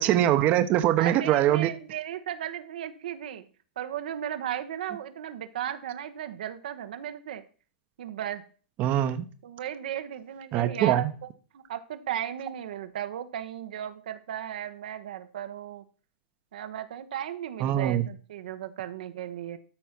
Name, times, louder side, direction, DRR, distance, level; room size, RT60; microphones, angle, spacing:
voice 1, 0.0-1.7 8.8-9.2 10.5-11.1 17.6-18.0, right 12 dB, 35° right, 10 dB, 1.0 m, -23 dB
voice 2, 1.0-3.4 3.8-7.4 8.0-8.4 9.4-11.1 11.5-15.8 16.5-19.6, right 10 dB, 70° right, 9 dB, 1.1 m, -35 dB
13.0 x 4.4 x 5.9 m, 0.39 s
hypercardioid pair, 125°, 5 cm